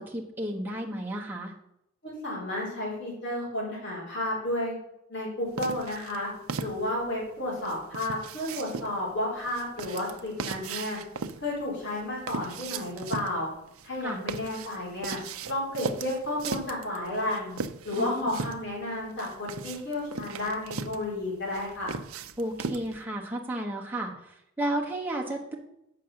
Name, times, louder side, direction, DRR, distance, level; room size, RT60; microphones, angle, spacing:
voice 1, 0.0-1.5 14.0-14.2 18.0-18.3 22.4-25.5, right 1 dB, 10° right, -2 dB, 1.2 m, -33 dB
voice 2, 2.0-4.8 5.1-6.3 6.6-11.0 11.4-13.5 13.8-15.2 15.5-17.6 17.8-21.9, left 1 dB, 55° left, -4 dB, 3.5 m, -32 dB
sound 1, 5.6-23.0, right 5 dB, 90° right, 0.6 m, -38 dB
7.7 x 5.9 x 6.5 m, 0.81 s
head